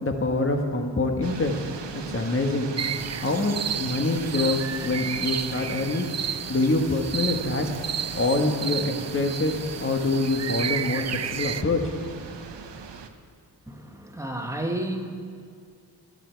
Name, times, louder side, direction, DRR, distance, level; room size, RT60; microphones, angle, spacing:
voice 1, 0.0-1.6 2.1-2.7 3.2-6.1 6.5-7.6 8.1-11.8, left 2 dB, 30° left, 3 dB, 1.5 m, -25 dB
sound 1, 1.2-13.1, right 6 dB, 75° right, 1.0 m, -39 dB
sound 2, 2.8-11.6, right 7 dB, 40° right, 0.5 m, -32 dB
voice 2, 13.7-15.1, right 1 dB, 5° right, 2 dB, 1.6 m, -31 dB
16.0 x 12.0 x 4.6 m, 2.2 s
cardioid pair, 65°, 42 cm